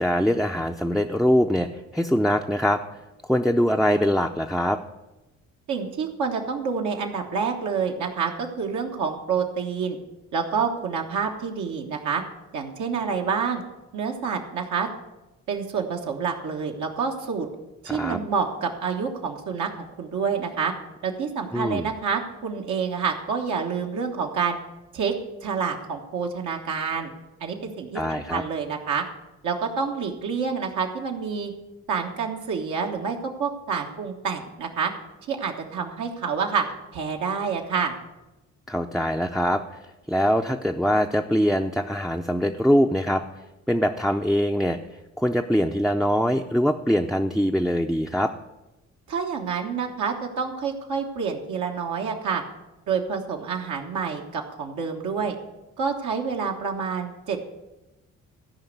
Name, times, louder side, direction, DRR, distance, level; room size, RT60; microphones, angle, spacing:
voice 1, 0.0-2.8 3.2-4.8 17.9-18.2 21.5-21.9 27.9-28.4 38.7-39.8 40.1-43.2 43.7-44.8 45.2-48.3, equal, ahead, 2 dB, 0.5 m, -23 dB
voice 2, 5.7-10.0 10.3-12.2 12.5-13.6 13.9-14.9 15.5-17.5 17.8-19.7 20.0-20.7 21.0-24.6 24.9-25.1 25.4-27.1 27.4-29.0 29.4-31.5 31.9-34.9 35.3-36.6 36.9-37.9 49.1-52.4 52.9-55.4 55.8-57.5, right 6 dB, 75° right, 1 dB, 1.3 m, -28 dB
13.5 x 5.2 x 8.0 m, 1.0 s
cardioid pair, 90°, 30 cm